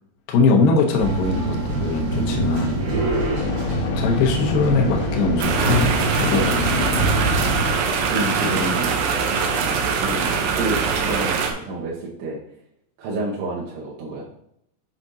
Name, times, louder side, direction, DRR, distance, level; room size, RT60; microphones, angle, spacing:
voice 1, 0.3-2.8 3.4-3.6 4.0-7.1, left 4 dB, 75° left, 1 dB, 2.1 m, -21 dB
sound 1, 1.0-7.7, right 1 dB, 55° right, 2.7 m, -24 dB
voice 2, 2.7-3.2 7.6-8.9 9.2-9.3 10.0-12.4 13.0-14.3, right 2 dB, 75° right, -4 dB, 3.0 m, -29 dB
sound 2, 3.3-11.9, left 5 dB, 90° left, 3.1 m, -32 dB
sound 3, 5.4-11.5, right 6 dB, 90° right, 2.0 m, -23 dB
7.4 x 5.7 x 2.7 m, 0.75 s
omnidirectional pair, 5.1 m